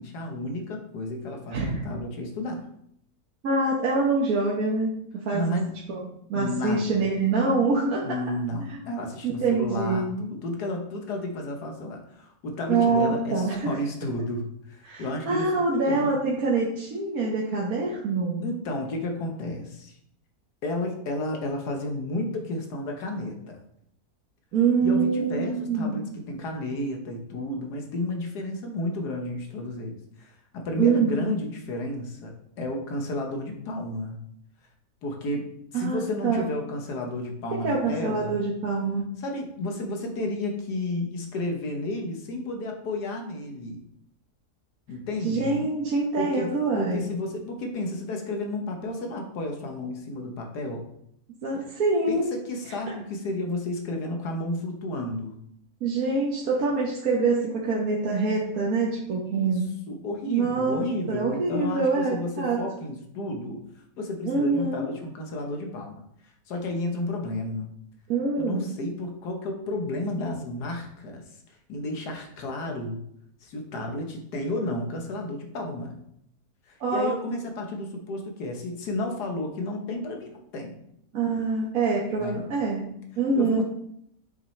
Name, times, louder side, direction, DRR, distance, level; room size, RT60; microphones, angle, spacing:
voice 1, 0.0-2.7 5.3-5.8 6.3-7.1 8.0-16.1 18.4-20.0 20.6-23.6 24.8-34.2 35.0-38.4 39.2-43.8 44.9-45.7 46.2-50.9 52.1-55.4 59.3-59.6 59.9-63.6 64.0-67.7 68.4-73.0 73.4-76.0 76.7-80.8 82.2-82.5 83.3-83.6, left 1 dB, 90° left, 3 dB, 1.7 m, -32 dB
voice 2, 3.4-5.6 5.9-6.0 6.3-8.0 8.7-8.8 9.2-10.1 12.7-13.7 14.8-18.4 24.5-26.1 30.8-31.3 35.7-36.4 37.5-39.0 45.2-47.0 51.4-52.3 55.8-59.6 60.3-62.6 64.2-64.9 68.1-68.7 76.8-77.1 81.1-83.6, right 4 dB, 65° right, -4 dB, 1.5 m, -25 dB
6.6 x 5.9 x 3.2 m, 0.73 s
omnidirectional pair, 1.7 m